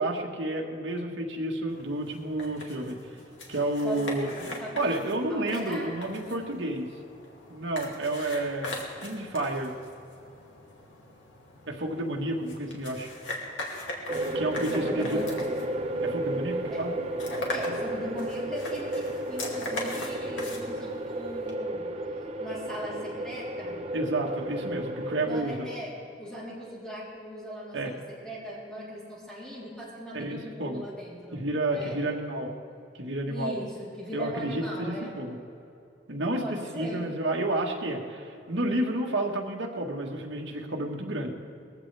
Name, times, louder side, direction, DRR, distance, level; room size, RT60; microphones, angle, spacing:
voice 1, 0.0-3.0 3.5-6.9 7.5-9.7 11.7-13.1 14.3-15.1 16.0-16.9 23.9-25.7 27.7-28.0 30.1-30.8 31.3-32.5 33.0-33.5 34.1-35.4 36.1-41.3, right 1 dB, 75° right, 0 dB, 1.6 m, -30 dB
sound 1, 1.7-21.5, left 2 dB, 80° left, 2.5 m, -41 dB
voice 2, 3.8-5.0 5.3-6.2 14.6-15.3 16.7-16.8 17.5-21.9 22.4-23.8 25.2-31.5 31.7-32.0 33.2-35.1 36.4-37.1, equal, 5° left, -7 dB, 3.5 m, -39 dB
sound 2, 14.1-25.4, right 1 dB, 30° right, 0.9 m, -33 dB
21.0 x 15.0 x 3.4 m, 2.6 s
head